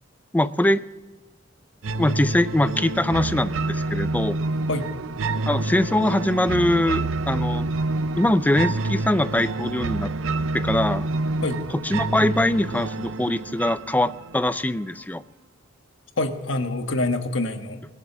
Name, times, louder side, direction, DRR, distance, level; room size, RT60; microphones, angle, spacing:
voice 1, 0.3-0.8 2.0-4.4 5.5-7.7 8.2-10.1 10.5-11.0 11.8-15.2, left 1 dB, 10° left, 14 dB, 0.4 m, -22 dB
sound 1, 1.8-14.8, right 2 dB, 80° right, 0.6 m, -28 dB
voice 2, 16.2-17.9, left 2 dB, 70° left, 6 dB, 1.4 m, -26 dB
21.0 x 7.4 x 7.1 m, 1.2 s
head